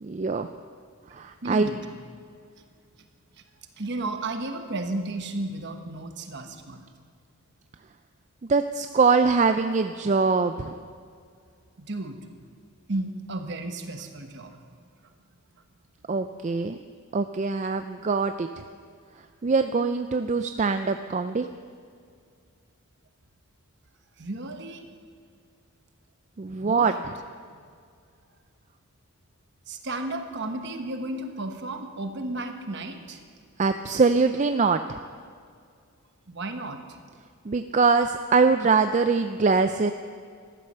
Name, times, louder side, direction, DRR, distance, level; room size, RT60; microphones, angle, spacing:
voice 1, 0.0-0.5 1.1-1.7 8.5-10.8 16.1-16.8 17.1-18.6 19.4-21.5 26.4-26.9 33.6-35.0 37.5-39.9, right 4 dB, 30° right, 8 dB, 0.4 m, -23 dB
voice 2, 1.1-1.8 2.6-2.7 3.3-3.4 3.8-6.8 11.8-12.2 12.9-14.8 24.2-24.9 26.6-27.0 29.7-33.2 36.3-37.0, right 2 dB, 50° right, 6 dB, 1.2 m, -33 dB
14.0 x 11.5 x 6.7 m, 2.2 s
head